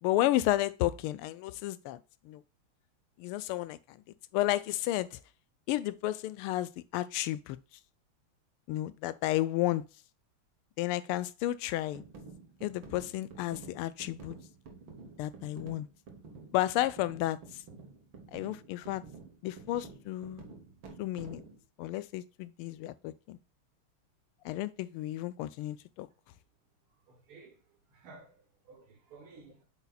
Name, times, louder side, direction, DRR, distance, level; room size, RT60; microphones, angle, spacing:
voice 1, 0.0-2.0 2.2-2.4 3.2-4.0 4.3-5.2 5.7-7.6 8.7-9.8 10.8-12.0 12.6-14.4 15.2-15.9 16.5-17.4 18.3-19.0 19.4-20.4 21.0-21.4 21.8-23.4 24.4-26.1, left 15 dB, 90° left, 1.5 m, -32 dB
sound 1, 11.9-21.6, right 4 dB, 70° right, 2.1 m, -50 dB
voice 2, 27.1-27.6 27.9-29.6, right 4 dB, 85° right, 2.3 m, -54 dB
8.1 x 5.5 x 2.4 m
omnidirectional pair, 2.3 m